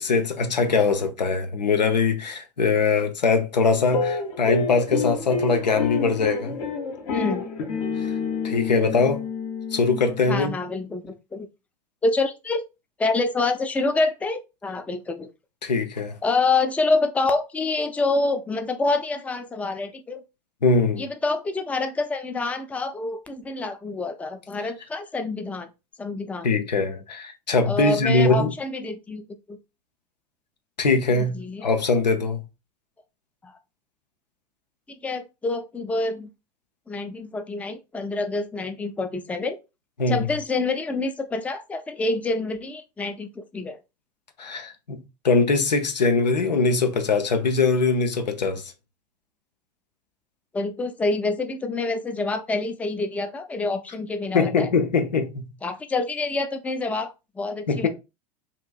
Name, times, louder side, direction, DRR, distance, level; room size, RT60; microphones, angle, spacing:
voice 1, 0.0-6.6 8.0-8.1 8.4-9.2 9.7-10.6 15.6-16.1 20.6-21.0 26.4-28.5 30.8-32.4 40.0-40.2 44.4-45.0 45.2-48.6 54.3-55.5 57.7-57.9, left 4 dB, 85° left, 0.5 m, -22 dB
sound 1, 3.9-10.4, left 5 dB, 55° left, 0.9 m, -28 dB
voice 2, 7.1-7.4 10.3-11.5 12.0-12.6 13.0-15.3 16.2-20.2 21.0-25.7 26.0-26.5 27.6-29.6 31.2-31.7 33.4-33.5 35.0-36.3 36.9-39.6 40.1-43.8 50.5-54.7 55.6-57.9, left 3 dB, 5° left, 0.4 m, -27 dB
2.9 x 2.4 x 2.3 m
figure-of-eight pair, 80°, 21 cm